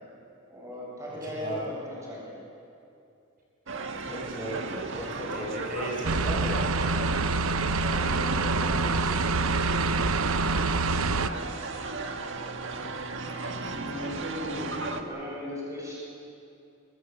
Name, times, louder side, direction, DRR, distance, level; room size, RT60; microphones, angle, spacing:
voice 1, 0.5-2.3 7.8-9.1 13.7-15.9, left 1 dB, 15° right, -5 dB, 7.6 m, -38 dB
voice 2, 1.1-1.6 4.1-6.6, right 1 dB, 45° right, -4 dB, 7.6 m, -35 dB
sound 1, 3.7-15.0, right 3 dB, 65° right, 1.7 m, -35 dB
sound 2, 6.0-11.3, right 3 dB, 85° right, 0.8 m, -26 dB
26.5 x 22.0 x 8.0 m, 2.7 s
head